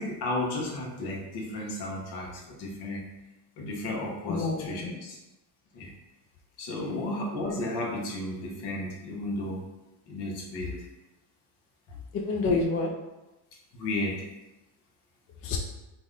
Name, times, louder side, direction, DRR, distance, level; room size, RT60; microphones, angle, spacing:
voice 1, 0.0-3.0 3.6-5.2 5.7-5.9 6.6-9.6 10.1-10.9 13.7-14.2, left 1 dB, 65° left, -2 dB, 0.9 m, -33 dB
voice 2, 4.3-4.9 6.9-7.0 12.1-12.9 15.4-15.6, left 3 dB, 35° left, 1 dB, 0.4 m, -28 dB
2.6 x 2.1 x 3.6 m, 1.0 s
supercardioid pair, 90°, 42 cm